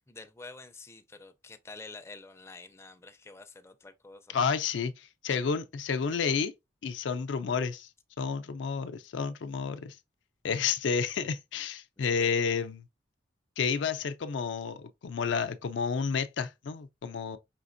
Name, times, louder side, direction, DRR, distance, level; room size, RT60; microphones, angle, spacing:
voice 1, 0.1-4.5 12.0-12.3, left 3 dB, 15° left, 0.4 m, -48 dB
voice 2, 4.3-6.5 6.8-7.9 8.2-10.0 10.4-12.9 13.6-17.4, left 6 dB, 75° left, 0.4 m, -30 dB
5.1 x 3.3 x 2.5 m
head